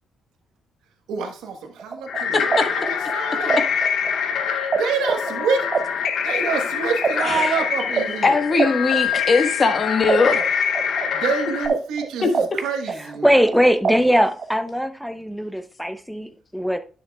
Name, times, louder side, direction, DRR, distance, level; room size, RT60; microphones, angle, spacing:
voice 1, 1.1-3.6 4.7-5.7 6.2-8.4 11.1-13.4, right 5 dB, 85° right, 1.2 m, -27 dB
sound 1, 1.8-4.8 5.0-9.7 10.1-12.6 12.9-14.5, right 5 dB, 45° right, 0.8 m, -25 dB
sound 2, 2.1-11.7, left 7 dB, 65° left, 0.7 m, -25 dB
voice 2, 2.3-2.7 7.3-7.5 8.2-10.4 12.2-12.3, left 4 dB, 40° left, 1.3 m, -20 dB
voice 3, 13.2-16.8, equal, ahead, 0.7 m, -20 dB
10.0 x 6.7 x 2.3 m
cardioid pair, 90°, 0 cm